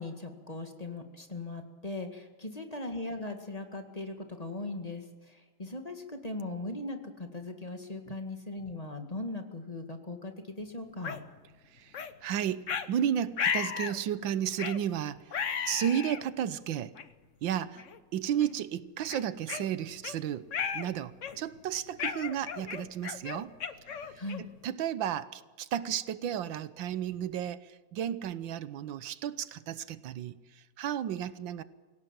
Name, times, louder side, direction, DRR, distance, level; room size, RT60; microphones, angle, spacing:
voice 1, 0.0-11.2 24.2-24.4, left 2 dB, 20° left, 2.0 m, -39 dB
sound 1, 11.0-11.2 11.9-12.1 12.7-12.9 13.4-14.0 14.6-14.8 15.3-16.2 17.0-17.1 17.8-18.0 18.4-18.5 19.1-20.2 20.5-20.9 21.2-21.5 22.0-24.6, left 7 dB, 45° left, 1.2 m, -34 dB
voice 2, 11.7-15.2 15.7-16.9 17.4-17.8 18.1-20.5 20.7-23.5 24.4-31.6, right 10 dB, 90° right, 1.6 m, -33 dB
25.5 x 17.0 x 7.5 m
omnidirectional pair, 2.0 m